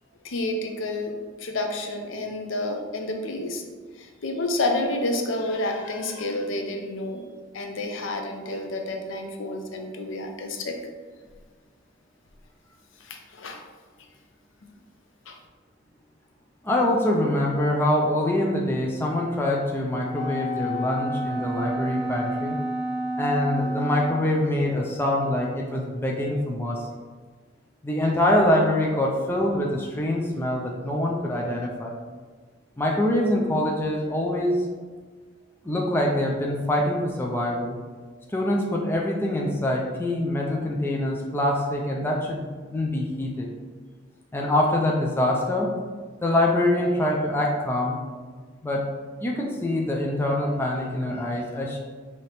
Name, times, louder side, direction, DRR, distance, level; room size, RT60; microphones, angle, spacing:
voice 1, 0.2-3.6 4.0-7.2 7.5-10.8 13.0-13.6 15.3-15.4, left 2 dB, 70° left, 3 dB, 0.5 m, -29 dB
voice 2, 16.6-22.6 23.2-26.9 27.8-32.0 32.8-34.6 35.6-37.8 38.3-42.5 42.7-43.5 44.3-45.7 46.2-48.0 48.6-48.9 49.2-51.8, left 1 dB, 10° left, -1 dB, 0.4 m, -24 dB
Wind instrument woodwind instrument, 20.1-24.4, equal, 20° right, 1.3 m, -30 dB
4.3 x 2.8 x 3.3 m, 1.4 s
head